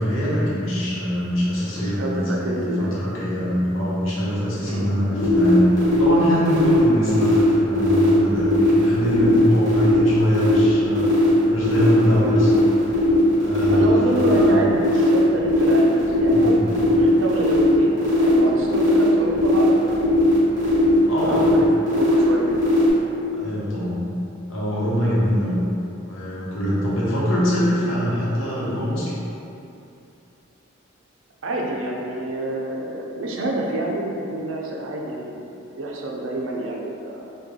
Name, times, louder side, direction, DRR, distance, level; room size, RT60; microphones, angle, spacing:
voice 1, 0.0-11.1 11.5-13.1 13.4-14.6 16.3-16.7 21.1-21.6 23.3-24.0 24.5-25.6 26.1-29.1, equal, 80° left, -7 dB, 0.9 m, -23 dB
voice 2, 1.8-2.9 4.6-4.9 9.8-10.1 12.0-12.3 13.7-16.6 16.9-20.0 21.3-22.6 31.4-35.5 35.8-37.3, right 1 dB, 75° right, -1 dB, 0.5 m, -28 dB
sound 1, 5.2-22.9, left 3 dB, 20° left, 1.2 m, -18 dB
3.2 x 2.2 x 3.6 m, 2.7 s
head